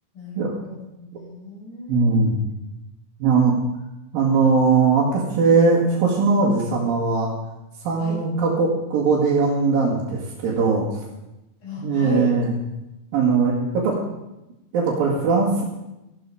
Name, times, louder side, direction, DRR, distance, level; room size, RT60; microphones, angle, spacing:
voice 1, 0.1-2.2 8.0-8.2 11.6-12.3, left 2 dB, 85° left, -5 dB, 8.4 m, -35 dB
voice 2, 1.9-2.4 3.2-3.6 4.1-7.3 7.8-10.9 11.8-12.5 13.1-14.0 14.7-15.6, right 4 dB, 90° right, -6 dB, 3.9 m, -20 dB
14.5 x 12.5 x 4.9 m, 0.95 s
omnidirectional pair, 4.0 m